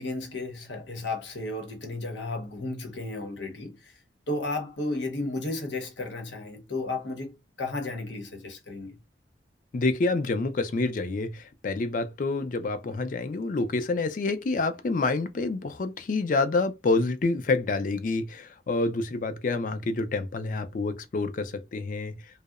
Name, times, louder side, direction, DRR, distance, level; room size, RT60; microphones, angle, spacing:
voice 1, 0.0-3.9 4.3-7.3 7.6-9.0, left 2 dB, 85° left, 0.8 m, -33 dB
voice 2, 9.7-22.2, left 3 dB, 45° left, 0.4 m, -28 dB
2.7 x 2.0 x 2.3 m
head